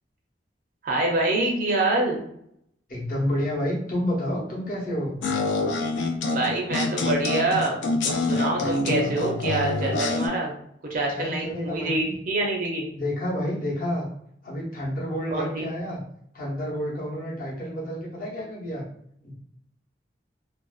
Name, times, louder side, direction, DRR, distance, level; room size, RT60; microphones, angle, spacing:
voice 1, 0.8-2.2 6.3-7.8 8.0-10.5 10.9-12.9 15.3-15.7, right 2 dB, 50° right, 0 dB, 0.4 m, -26 dB
voice 2, 2.9-5.2 11.1-12.2 12.9-14.1 14.4-16.0 16.3-18.8 19.2-19.4, equal, 50° left, -4 dB, 0.8 m, -29 dB
sound 1, 5.2-10.3, left 3 dB, 85° left, 0.4 m, -26 dB
2.5 x 2.1 x 2.3 m, 0.70 s
head